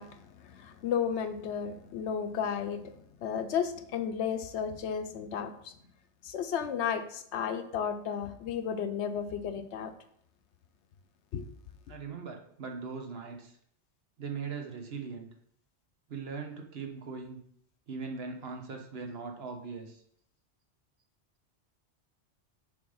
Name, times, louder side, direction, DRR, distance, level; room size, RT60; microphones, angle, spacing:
voice 1, 0.0-5.7 6.2-9.9 11.3-11.4, left 7 dB, 80° left, 0.9 m, -33 dB
voice 2, 11.9-13.6 14.2-15.3 16.1-17.4 17.9-20.0, right 5 dB, 65° right, 1.1 m, -40 dB
6.8 x 3.4 x 5.5 m
omnidirectional pair, 1.1 m